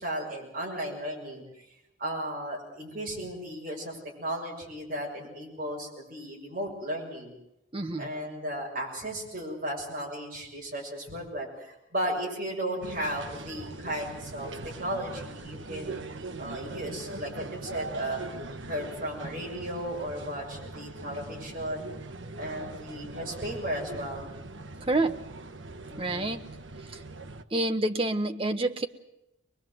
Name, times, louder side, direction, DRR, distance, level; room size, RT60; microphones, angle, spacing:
voice 1, 0.0-1.4 2.0-7.3 8.0-14.5 14.8-16.0 16.4-18.2 18.7-21.9 22.4-24.3 25.9-26.3, right 1 dB, 45° right, -1 dB, 6.6 m, -35 dB
voice 2, 7.7-8.1 19.2-19.3 24.8-25.2 26.0-26.4 27.5-28.9, right 2 dB, 25° right, 6 dB, 1.0 m, -28 dB
sound 1, 12.8-27.4, right 2 dB, 70° right, 1.1 m, -41 dB
23.0 x 21.5 x 7.7 m, 0.86 s
head